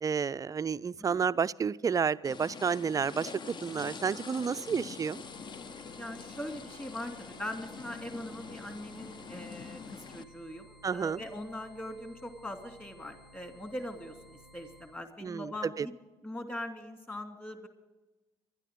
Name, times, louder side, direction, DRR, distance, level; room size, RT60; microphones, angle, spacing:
voice 1, 0.0-5.2 10.8-11.2 15.2-15.9, right 6 dB, 25° right, 17 dB, 0.4 m, -31 dB
sound 1, 2.2-10.2, left 5 dB, 35° left, 0.7 m, -45 dB
sound 2, 5.0-15.0, equal, 80° left, 1.2 m, -57 dB
voice 2, 6.0-15.9 16.2-17.7, left 1 dB, 15° left, 5 dB, 2.9 m, -41 dB
23.0 x 12.5 x 3.7 m, 1.1 s
figure-of-eight pair, 55°, 14 cm